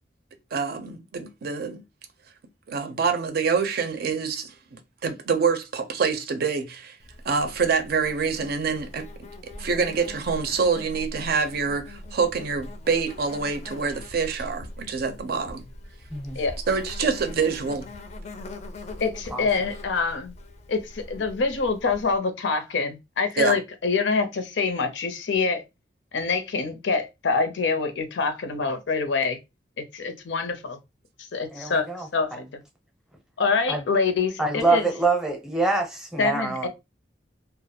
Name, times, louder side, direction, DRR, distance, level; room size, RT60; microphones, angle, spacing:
voice 1, 0.5-1.8 2.7-7.0 7.2-9.1 9.4-15.7 16.7-17.9 23.4-23.6, right 5 dB, 60° right, 0.4 m, -26 dB
Insect, 7.0-22.2, left 1 dB, 40° left, 0.4 m, -41 dB
voice 2, 19.0-20.3 20.7-25.6 26.1-29.4 29.8-30.8 31.3-31.9 32.1-32.6 33.4-34.9 36.2-36.7, left 4 dB, 85° left, 0.5 m, -25 dB
voice 3, 31.5-32.4 33.7-33.8 34.4-36.7, right 3 dB, 5° right, 0.6 m, -25 dB
2.3 x 2.0 x 2.7 m
head